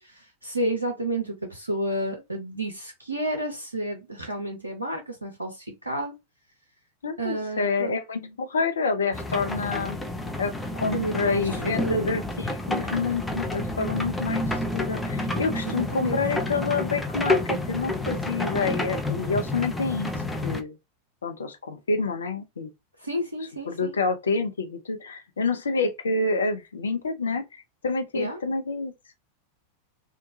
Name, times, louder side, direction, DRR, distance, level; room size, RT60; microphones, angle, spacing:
voice 1, 0.0-6.1 7.2-7.9 10.9-12.2 15.7-16.2 23.0-23.9 28.1-28.4, right 1 dB, 80° right, 0.5 m, -31 dB
voice 2, 7.0-10.0 10.4-20.1 20.4-20.8 21.2-22.7 23.7-28.9, left 4 dB, 70° left, 0.6 m, -28 dB
sound 1, 9.1-20.6, left 2 dB, 5° left, 0.5 m, -29 dB
2.9 x 2.2 x 2.5 m
figure-of-eight pair, 90°, 0 cm